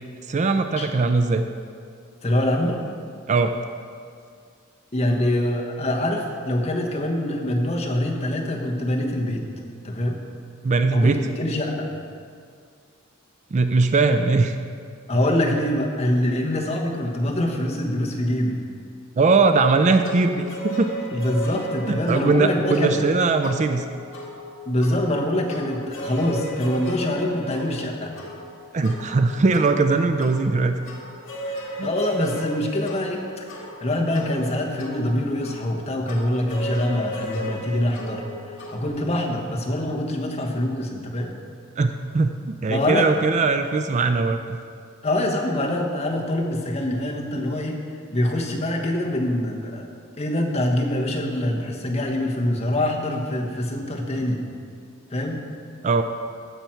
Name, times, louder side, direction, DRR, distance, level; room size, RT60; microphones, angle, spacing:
voice 1, 0.3-1.4 3.3-3.5 10.6-11.2 13.5-14.6 19.2-21.2 21.9-23.8 28.7-30.8 31.8-31.9 41.8-41.9 42.1-44.6 55.8-56.0, right 3 dB, 35° right, 8 dB, 0.4 m, -20 dB
voice 2, 2.2-2.8 4.9-9.4 9.8-10.2 10.9-11.9 15.1-18.6 21.1-23.0 24.7-28.1 31.4-33.2 33.5-38.2 38.7-41.3 42.7-43.1 45.0-47.8 48.1-49.9 50.2-54.4 55.1-55.4, left 1 dB, 30° left, 0 dB, 1.1 m, -24 dB
sound 1, 20.0-38.9, equal, 60° left, 1.9 m, -36 dB
15.0 x 5.8 x 4.5 m, 2.2 s
head